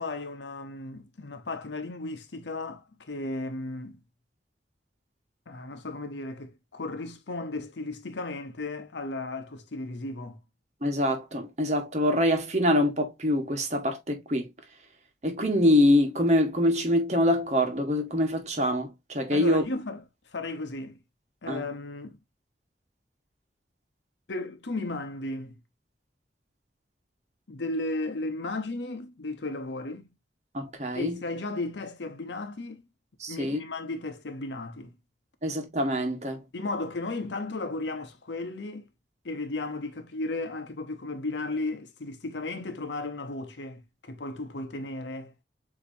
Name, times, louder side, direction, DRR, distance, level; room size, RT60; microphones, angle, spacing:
voice 1, 0.0-4.0 5.5-10.4 19.3-20.0 20.3-21.0 21.4-22.2 24.3-25.5 27.5-30.1 30.9-32.8 33.3-34.9 36.5-38.9 39.2-45.3, left 2 dB, 90° left, 0.8 m, -35 dB
voice 2, 10.8-14.5 15.2-19.6 21.5-21.6 30.5-31.1 33.2-33.6 35.4-36.4, left 1 dB, 40° right, 1.2 m, -25 dB
6.9 x 2.9 x 2.6 m
head